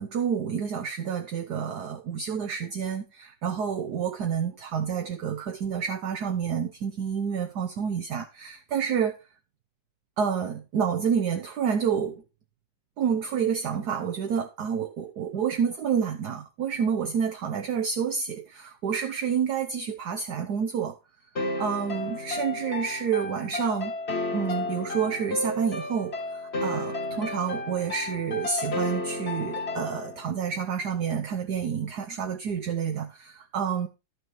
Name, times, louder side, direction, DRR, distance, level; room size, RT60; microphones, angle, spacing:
voice 1, 0.0-9.2 10.2-12.2 13.0-21.0 21.6-23.9 24.3-33.9, right 7 dB, 60° right, 1.3 m, -29 dB
sound 1, 21.4-30.2, left 2 dB, 35° left, 2.0 m, -32 dB
12.0 x 6.5 x 4.5 m
omnidirectional pair, 2.1 m